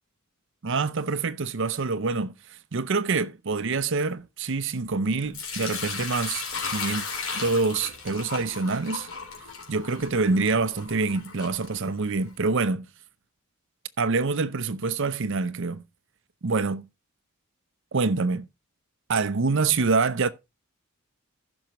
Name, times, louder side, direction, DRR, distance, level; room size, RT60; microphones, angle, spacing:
voice 1, 0.6-6.4 6.7-7.0 7.3-9.1 9.7-12.9 14.0-15.8 16.4-16.9 17.9-18.5 19.1-20.3, right 4 dB, 60° right, 0.7 m, -26 dB
Sink (filling or washing) / Liquid, 5.3-12.3, left 5 dB, 70° left, 3.8 m, -35 dB
15.0 x 6.3 x 3.0 m
head